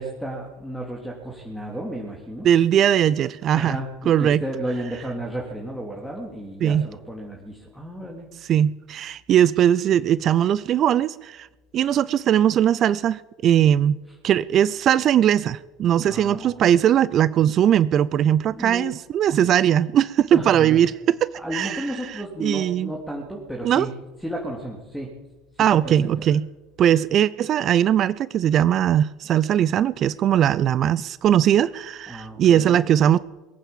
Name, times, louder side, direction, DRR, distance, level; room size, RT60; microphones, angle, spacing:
voice 1, 0.0-2.5 3.5-8.3 16.0-16.7 18.5-18.9 20.3-20.8 21.4-23.9 24.2-25.1 25.5-26.1 32.1-32.8, right 1 dB, ahead, 0 dB, 3.4 m, -33 dB
voice 2, 2.4-3.8 4.1-4.4 6.6-6.9 8.5-11.5 11.7-14.0 14.2-21.9 22.4-22.9 23.6-23.9 25.6-26.5 26.8-33.2, right 10 dB, 45° right, 19 dB, 0.4 m, -19 dB
22.0 x 9.0 x 7.3 m, 1.1 s
figure-of-eight pair, 65°, 0 cm